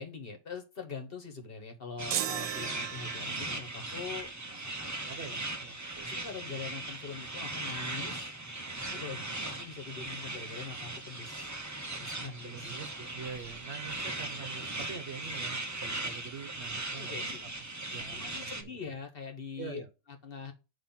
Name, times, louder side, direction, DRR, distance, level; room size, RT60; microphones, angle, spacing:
voice 1, 0.0-5.0 6.0-8.3 8.8-11.5 11.9-12.7 16.9-17.6 18.1-19.8 20.2-20.5, left 5 dB, 50° left, 1.4 m, -43 dB
sound 1, 2.0-18.6, right 2 dB, 15° right, 0.7 m, -39 dB
sound 2, 2.1-3.6, right 10 dB, 75° right, 0.9 m, -35 dB
voice 2, 5.0-6.2 8.7-9.0 12.4-17.5 17.9-18.8 19.6-19.9, right 5 dB, 60° right, 1.2 m, -45 dB
8.7 x 3.0 x 5.7 m
omnidirectional pair, 1.3 m